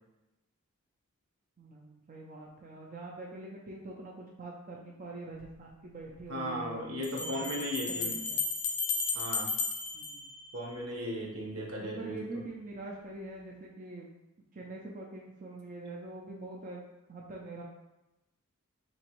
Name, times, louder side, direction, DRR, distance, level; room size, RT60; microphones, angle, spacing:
voice 1, 1.6-7.6 8.0-8.4 9.9-10.3 11.8-14.1 14.5-17.6, right 2 dB, 40° right, -2 dB, 0.5 m, -44 dB
sound 1, 5.4-5.5 7.0-11.0, left 4 dB, 85° left, 0.6 m, -34 dB
voice 2, 6.3-8.1 9.1-9.5 10.5-12.2, equal, 75° right, -2 dB, 1.0 m, -36 dB
4.5 x 3.0 x 3.0 m, 0.97 s
head